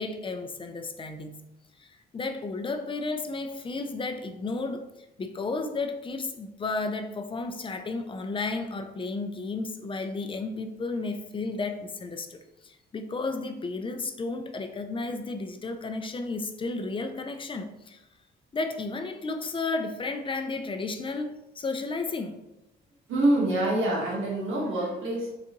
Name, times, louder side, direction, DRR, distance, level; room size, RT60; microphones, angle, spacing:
voice 1, 0.0-1.4 1.8-4.9 5.2-18.0 18.5-22.4, left 3 dB, 25° left, 0.5 m, -33 dB
voice 2, 23.1-25.3, right 1 dB, 80° right, 1.4 m, -26 dB
3.9 x 3.4 x 3.0 m
cardioid pair, 90°, 20 cm